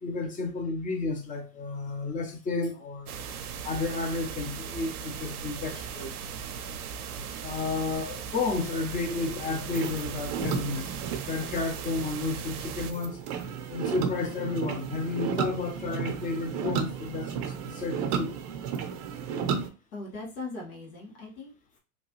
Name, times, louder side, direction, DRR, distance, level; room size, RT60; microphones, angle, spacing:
voice 1, 0.0-3.1 3.6-6.1 7.4-13.2 13.7-18.3, left 3 dB, 20° left, 0.7 m, -32 dB
sound 1, 3.1-12.9, right 7 dB, 85° right, 0.6 m, -38 dB
sound 2, 9.1-19.7, right 7 dB, 45° right, 0.7 m, -34 dB
voice 2, 19.9-21.8, left 3 dB, 75° left, 1.7 m, -40 dB
3.0 x 2.3 x 3.0 m
hypercardioid pair, 100°, 43 cm